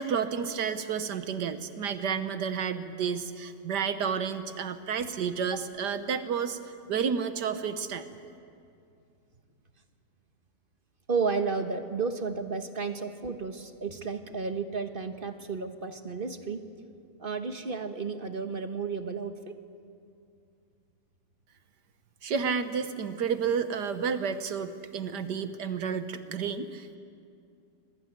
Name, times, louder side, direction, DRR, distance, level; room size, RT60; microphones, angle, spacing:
voice 1, 0.0-6.6 6.9-8.1 22.2-27.0, right 6 dB, 65° right, 10 dB, 1.6 m, -31 dB
voice 2, 11.1-16.6 17.2-19.5, right 4 dB, 35° right, 8 dB, 1.2 m, -32 dB
25.0 x 21.5 x 9.5 m, 2.5 s
omnidirectional pair, 2.0 m